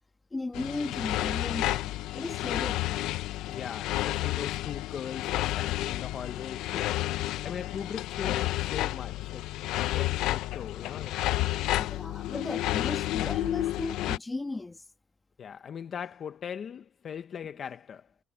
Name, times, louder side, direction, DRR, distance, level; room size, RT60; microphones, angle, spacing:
voice 1, 0.3-3.1 11.7-14.8, left 2 dB, 10° left, 1.6 m, -36 dB
sound 1, 0.5-14.2, left 16 dB, 80° left, 0.5 m, -31 dB
voice 2, 3.5-9.5 9.8-11.2 15.4-18.1, left 7 dB, 35° left, 0.6 m, -40 dB
cardioid pair, 170°, 0 cm